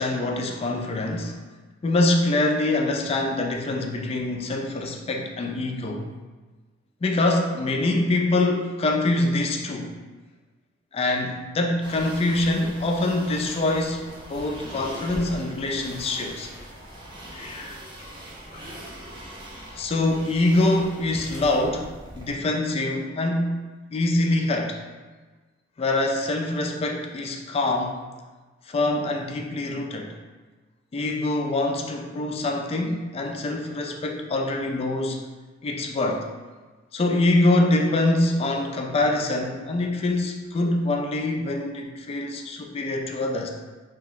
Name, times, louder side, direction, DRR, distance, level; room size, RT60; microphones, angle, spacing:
voice 1, 0.0-1.4 1.8-6.1 7.0-9.9 10.9-16.5 17.3-17.7 18.5-18.6 19.7-23.6 23.9-24.8 25.8-28.0 28.7-30.1 30.9-35.2 35.6-36.3 36.9-43.5, left 2 dB, 30° left, 2 dB, 0.3 m, -24 dB
sound 1, 11.8-22.3, equal, 25° right, 0.6 m, -41 dB
2.8 x 2.0 x 3.8 m, 1.3 s
head